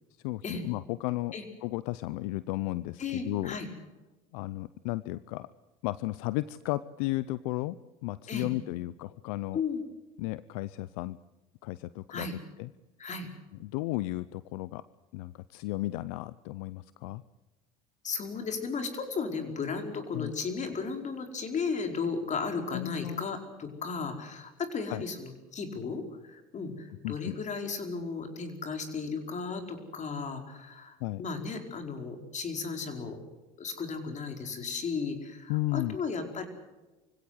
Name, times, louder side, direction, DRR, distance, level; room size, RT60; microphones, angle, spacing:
voice 1, 0.2-1.3 1.6-3.6 4.3-5.5 5.8-9.6 10.2-11.2 11.6-12.3 12.6-12.7 13.6-14.8 15.1-17.2 20.1-20.3 22.7-23.2 24.9-25.0 27.0-27.3 31.0-31.2 35.5-36.0, left 18 dB, 75° left, 17 dB, 0.6 m, -34 dB
voice 2, 3.0-3.7 8.3-8.5 9.5-9.8 12.1-12.3 13.0-13.3 18.0-33.2 33.6-36.5, left 5 dB, 40° left, 5 dB, 4.9 m, -35 dB
24.5 x 16.5 x 8.0 m, 1.1 s
hypercardioid pair, 75°, 18 cm